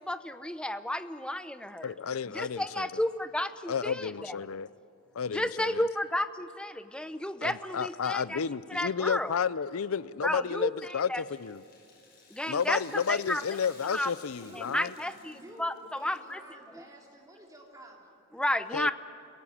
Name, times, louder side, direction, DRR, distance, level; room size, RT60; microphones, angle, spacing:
voice 1, 0.0-1.9 2.3-4.1 5.3-8.4 8.7-9.3 10.2-10.7 11.1-11.2 12.3-12.8 13.1-13.4 13.9-14.1 14.5-15.7 16.0-16.4 18.3-18.9, left 1 dB, 5° left, 0.7 m, -32 dB
voice 2, 1.8-3.0 3.7-4.7 5.2-5.9 7.4-11.6 12.5-14.9 18.7-18.9, left 6 dB, 75° left, 0.5 m, -32 dB
Rattle (instrument), 11.1-16.3 16.6-16.7 17.6-17.7, left 4 dB, 45° left, 5.6 m, -56 dB
voice 3, 14.4-18.2, equal, 15° right, 3.7 m, -51 dB
28.5 x 17.0 x 9.9 m
head